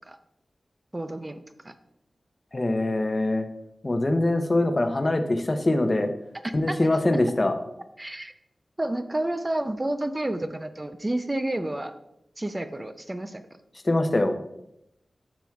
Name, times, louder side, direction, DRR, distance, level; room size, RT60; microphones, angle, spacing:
voice 1, 0.9-1.4 1.6-1.7 6.4-6.8 8.0-8.3 8.8-11.9 12.4-13.4, right 1 dB, 20° right, 9 dB, 0.4 m, -30 dB
voice 2, 2.5-3.5 3.8-6.1 6.5-7.6 13.8-14.4, left 2 dB, 35° left, 7 dB, 0.7 m, -23 dB
11.5 x 6.0 x 2.3 m, 0.82 s
wide cardioid pair, 95°, 0 cm